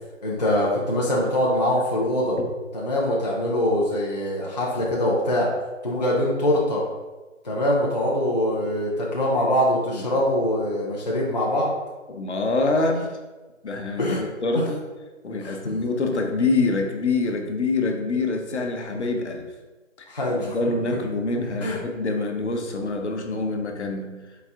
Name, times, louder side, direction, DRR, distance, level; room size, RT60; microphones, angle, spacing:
voice 1, 0.2-2.4 2.7-5.5 5.8-6.8 7.4-11.7 14.0-14.2 15.4-15.7 20.1-20.6 21.6-21.8, left 1 dB, 35° left, -5 dB, 0.4 m, -23 dB
voice 2, 12.1-13.2 13.6-14.8 15.2-19.5 20.0-24.1, left 3 dB, 60° left, 3 dB, 0.8 m, -26 dB
4.2 x 2.4 x 3.5 m, 1.2 s
figure-of-eight pair, 165°, 38 cm